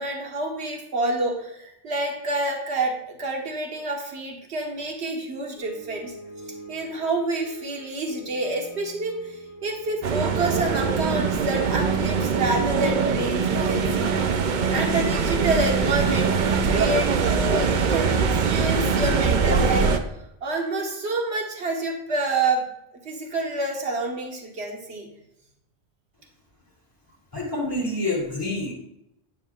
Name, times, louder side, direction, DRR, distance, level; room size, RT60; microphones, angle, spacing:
voice 1, 0.0-6.1 6.7-19.9 20.4-22.7 23.0-25.1, right 2 dB, 75° right, 1 dB, 1.6 m, -28 dB
sound 1, 5.6-19.8, left 1 dB, 15° right, 1.9 m, -44 dB
sound 2, 10.0-20.0, right 5 dB, 55° right, 0.6 m, -22 dB
voice 2, 27.3-28.7, left 2 dB, 20° left, -4 dB, 2.5 m, -27 dB
10.0 x 7.0 x 2.4 m, 0.79 s
omnidirectional pair, 1.1 m